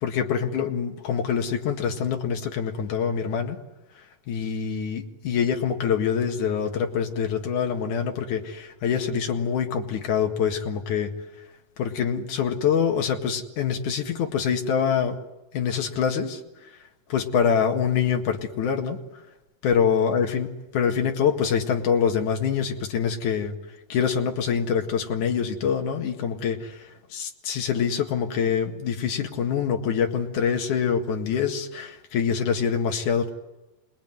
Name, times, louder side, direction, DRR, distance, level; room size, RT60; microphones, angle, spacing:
voice 1, 0.0-3.6 4.3-11.1 11.8-15.2 15.5-16.4 17.1-19.0 19.6-23.5 23.9-26.7 27.1-33.3, left 7 dB, 70° left, 4 dB, 3.2 m, -25 dB
27.0 x 20.5 x 9.3 m, 1.0 s
omnidirectional pair, 3.8 m